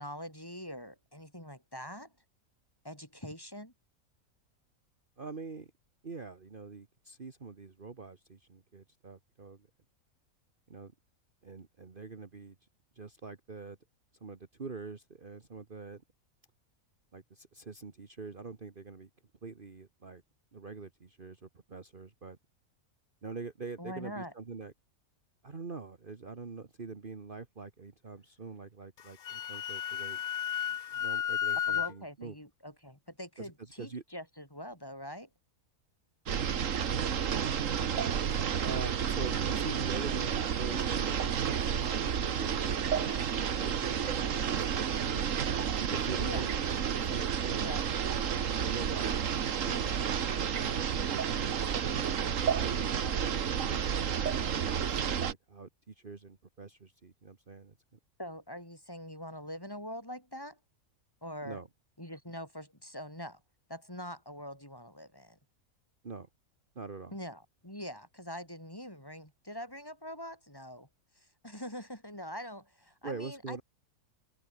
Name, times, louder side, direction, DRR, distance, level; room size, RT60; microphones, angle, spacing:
voice 1, 0.0-2.1 2.8-3.7 23.8-24.3 31.7-35.3 46.2-46.4 47.6-47.9 58.2-60.6 61.2-61.6 62.0-63.4 63.7-65.4 67.1-70.9 71.2-73.6, equal, 15° left, 7.1 m, -43 dB
voice 2, 5.2-5.7 6.0-9.7 10.7-10.9 11.4-12.6 13.0-13.8 14.2-16.0 17.1-19.1 19.4-20.2 20.5-22.4 23.2-24.7 25.4-30.2 30.9-32.4 33.4-34.0 38.6-42.7 43.0-45.3 45.8-46.6 46.8-47.6 48.6-49.4 49.6-50.0 50.3-51.9 52.6-57.8 61.4-61.7 66.0-66.3 66.8-67.1 73.0-73.6, right 4 dB, 40° right, 1.7 m, -44 dB
Wind instrument woodwind instrument, 29.0-31.9, left 9 dB, 60° left, 0.5 m, -33 dB
sound 1, 36.3-55.3, right 8 dB, 65° right, 1.5 m, -31 dB
omnidirectional pair, 1.5 m